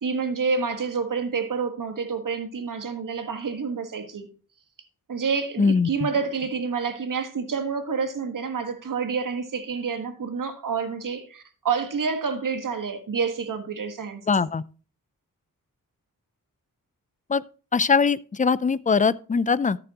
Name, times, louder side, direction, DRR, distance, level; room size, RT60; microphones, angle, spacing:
voice 1, 0.0-4.3 5.1-14.5, right 5 dB, 65° right, 1.6 m, -28 dB
voice 2, 5.6-6.1 14.3-14.6 17.3-17.4 17.7-19.8, left 5 dB, 25° left, 0.4 m, -21 dB
13.5 x 7.0 x 2.9 m
cardioid pair, 70°, 34 cm